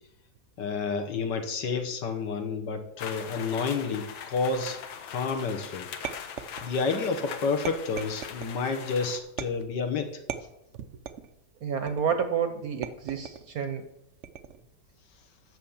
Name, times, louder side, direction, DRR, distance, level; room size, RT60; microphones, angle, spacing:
voice 1, 0.6-5.9 6.6-10.2, left 4 dB, 65° left, 6 dB, 1.6 m, -30 dB
sound 1, 3.0-9.2, left 8 dB, 90° left, 1.7 m, -41 dB
sound 2, 6.0-7.0 7.6-8.6 9.4-9.8 10.3-11.3 11.9-12.3 12.8-13.5 14.2-14.7, right 9 dB, 80° right, 0.6 m, -38 dB
voice 2, 11.6-13.8, right 7 dB, 60° right, 8 dB, 1.1 m, -29 dB
9.3 x 6.4 x 7.1 m, 0.85 s
omnidirectional pair, 2.1 m